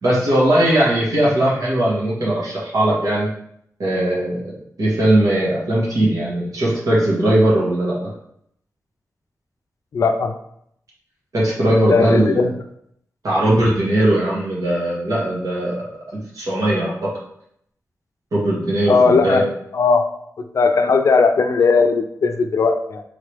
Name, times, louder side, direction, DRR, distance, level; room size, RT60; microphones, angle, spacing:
voice 1, 0.0-3.3 3.8-4.5 4.8-8.1 11.3-12.5 13.2-15.7 16.1-17.1 18.3-19.4, right 1 dB, 75° right, -6 dB, 1.6 m, -19 dB
voice 2, 9.9-10.3 11.9-12.5 18.9-19.4 19.7-20.0 20.5-23.0, left 4 dB, 65° left, 7 dB, 0.4 m, -17 dB
3.6 x 3.1 x 3.4 m, 0.72 s
wide cardioid pair, 95°, 6 cm